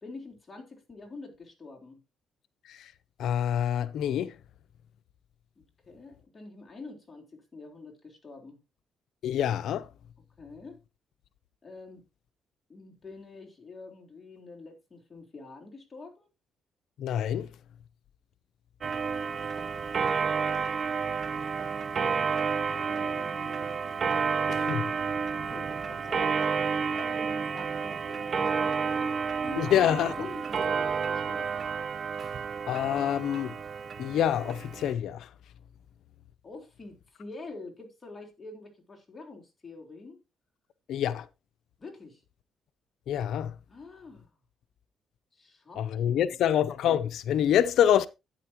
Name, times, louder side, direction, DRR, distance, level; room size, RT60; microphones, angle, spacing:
voice 1, 0.0-2.0 5.6-8.6 10.4-10.8 11.6-12.0 12.7-16.3 22.7-23.8 25.3-31.7 36.4-40.2 41.8-42.2 43.7-44.3 45.3-46.4, left 3 dB, 30° left, 3.8 m, -46 dB
voice 2, 3.2-4.3 9.2-9.9 17.0-17.5 24.5-24.9 29.6-30.1 32.7-33.5 34.0-35.3 40.9-41.3 43.1-43.5 45.8-48.1, left 10 dB, 75° left, 0.6 m, -26 dB
Clock, 18.8-34.9, right 5 dB, 45° right, 0.9 m, -30 dB
11.5 x 9.5 x 3.0 m
cardioid pair, 90°, 0 cm